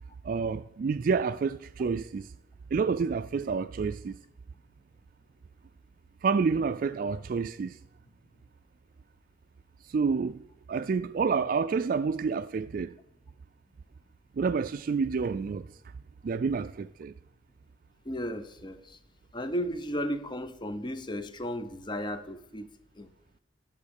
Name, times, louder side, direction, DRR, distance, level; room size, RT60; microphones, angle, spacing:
voice 1, 0.2-2.3 2.7-4.2 6.2-7.8 9.8-13.0 14.4-15.7 16.2-17.1, right 5 dB, 50° right, 0.3 m, -29 dB
voice 2, 18.0-19.0 19.3-23.1, equal, 25° left, 0.8 m, -35 dB
11.5 x 7.2 x 6.4 m
head